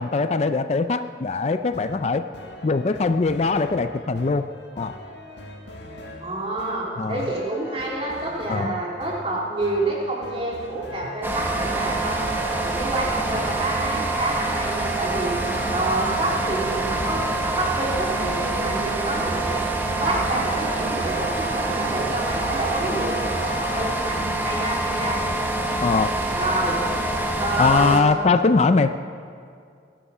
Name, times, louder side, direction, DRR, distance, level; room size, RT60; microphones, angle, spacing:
voice 1, 0.0-2.2 2.6-4.5 4.8-4.9 7.0-7.2 8.5-8.8 25.8-26.2 27.6-29.0, left 4 dB, 35° left, 10 dB, 0.4 m, -21 dB
sound 1, 1.4-17.6, left 1 dB, 80° left, 1.9 m, -42 dB
voice 2, 6.2-12.2 12.6-15.3 15.7-19.6 20.0-25.1 26.3-26.8 27.4-28.0, right 2 dB, 35° right, -4 dB, 3.5 m, -28 dB
sound 2, 11.2-28.0, right 2 dB, 10° right, 1.1 m, -26 dB
19.0 x 11.5 x 5.6 m, 2.3 s
head